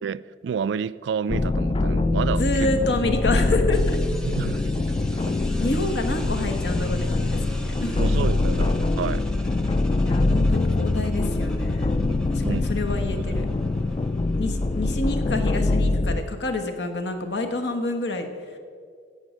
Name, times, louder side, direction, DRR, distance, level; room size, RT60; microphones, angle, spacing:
voice 1, 0.0-2.7 4.2-4.7 8.0-9.2 12.1-12.2 12.4-12.7, right 7 dB, 90° right, 0.3 m, -29 dB
sound 1, 1.3-16.2, left 2 dB, 30° left, 0.3 m, -23 dB
voice 2, 2.4-4.0 5.6-8.3 10.0-12.0 12.3-13.5 14.3-18.6, left 2 dB, 75° left, 1.2 m, -28 dB
sound 2, 3.7-15.7, equal, 5° left, 0.7 m, -44 dB
16.0 x 5.4 x 6.3 m
head